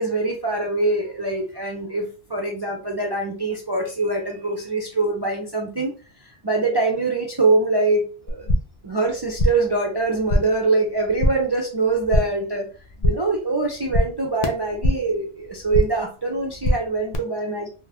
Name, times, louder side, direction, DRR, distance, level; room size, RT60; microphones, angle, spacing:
voice 1, 0.0-5.9 6.4-8.4 8.8-12.7 13.0-17.7, right 3 dB, 45° right, -1 dB, 0.3 m, -23 dB
sound 1, 8.3-8.8 9.1-9.7 10.0-10.7 10.9-11.5 11.8-12.5 12.8-13.4 13.6-15.2 15.5-16.1 16.4-17.2, left 1 dB, 50° left, 0.4 m, -24 dB
2.4 x 2.3 x 3.4 m, 0.36 s
omnidirectional pair, 1.1 m